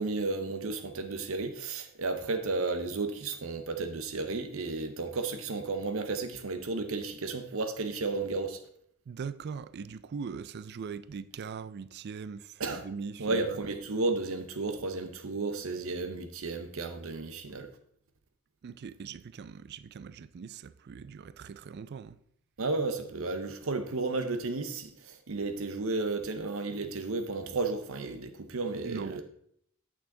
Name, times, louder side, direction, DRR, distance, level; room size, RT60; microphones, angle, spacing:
voice 1, 0.0-8.6 12.6-12.9 13.2-17.7 22.6-29.2, right 3 dB, 70° right, 0.7 m, -33 dB
voice 2, 9.1-13.6 18.6-22.2 28.8-29.2, right 5 dB, 50° right, 0.4 m, -41 dB
8.5 x 6.3 x 3.8 m
head